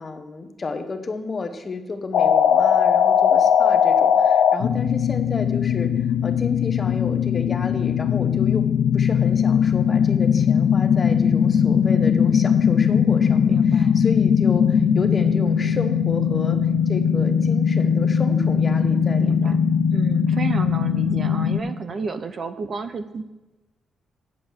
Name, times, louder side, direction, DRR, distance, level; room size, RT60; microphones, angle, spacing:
voice 1, 0.0-8.7 8.9-16.6 16.9-19.6, left 3 dB, 25° left, 8 dB, 0.9 m, -32 dB
sound 1, 2.1-21.6, left 7 dB, 75° left, 0.6 m, -19 dB
voice 2, 13.5-14.0 19.2-23.3, right 5 dB, 35° right, 11 dB, 0.5 m, -32 dB
9.1 x 7.4 x 6.3 m, 1.1 s
wide cardioid pair, 170°, 0 cm